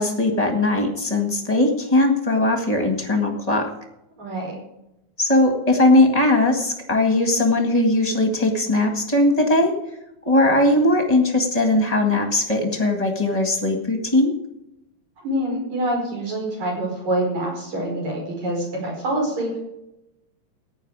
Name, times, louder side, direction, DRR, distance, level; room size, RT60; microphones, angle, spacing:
voice 1, 0.0-3.7 5.2-9.8 10.2-14.3, left 2 dB, 20° left, 4 dB, 1.2 m, -19 dB
voice 2, 4.2-4.6 15.2-19.5, right 1 dB, 70° right, -1 dB, 6.2 m, -26 dB
15.0 x 10.0 x 4.8 m, 0.89 s
omnidirectional pair, 3.4 m